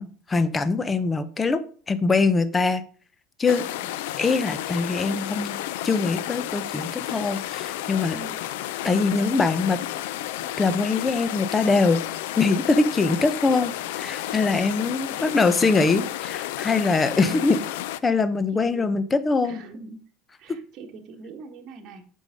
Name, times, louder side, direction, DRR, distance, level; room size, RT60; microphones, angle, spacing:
voice 1, 0.0-1.6 1.9-2.8 3.4-3.6 4.2-5.6 5.8-8.2 8.8-9.8 10.6-12.0 12.4-17.6 18.0-19.6 20.5-20.6, left 4 dB, 15° left, 13 dB, 0.7 m, -23 dB
sound 1, 3.5-18.0, left 14 dB, 90° left, 0.5 m, -32 dB
voice 2, 8.1-8.4 15.0-15.5 17.1-17.4 18.5-19.0 19.4-20.0 20.4-22.1, right 4 dB, 40° right, 1 dB, 1.5 m, -43 dB
8.0 x 5.5 x 5.2 m, 0.43 s
cardioid pair, 145°, 0 cm